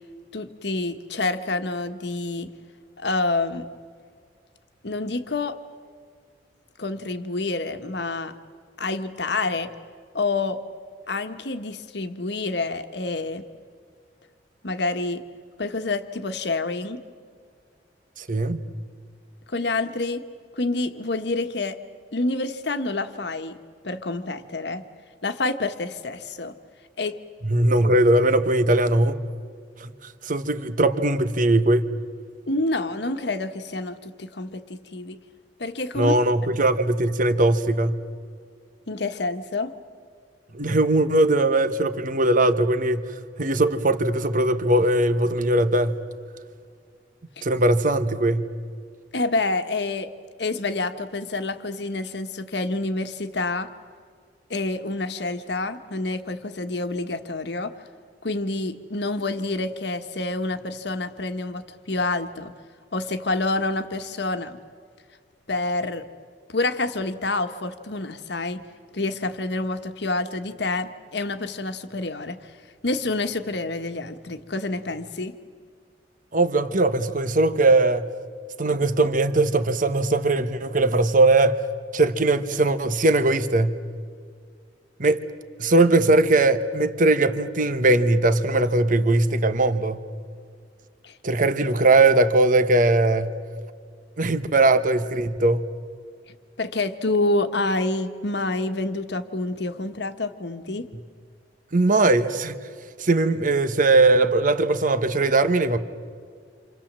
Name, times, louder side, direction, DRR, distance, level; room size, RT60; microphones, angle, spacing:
voice 1, 0.3-2.5 3.0-3.7 4.8-5.6 6.8-8.3 8.8-9.7 10.1-10.6 11.1-13.4 14.6-15.2 15.6-17.0 19.5-20.2 20.5-21.8 22.1-23.6 23.8-24.8 25.2-26.5 27.0-27.2 32.5-35.2 35.6-36.2 38.9-39.7 47.4-47.5 49.1-50.1 50.4-53.7 54.5-57.7 58.2-62.5 62.9-64.6 65.5-66.0 66.5-68.6 68.9-72.4 72.8-75.4 91.0-91.1 96.6-100.9, left 2 dB, 65° left, 1.4 m, -27 dB
voice 2, 18.2-18.6 27.4-29.2 29.8-31.8 35.9-38.0 40.5-43.1 43.4-46.0 47.4-48.5 76.3-78.1 78.6-81.6 81.9-83.8 85.0-85.2 85.6-90.0 91.2-93.4 94.2-95.7 101.7-102.5 103.0-105.8, right 2 dB, 45° right, 1.2 m, -20 dB
28.5 x 27.5 x 7.5 m
head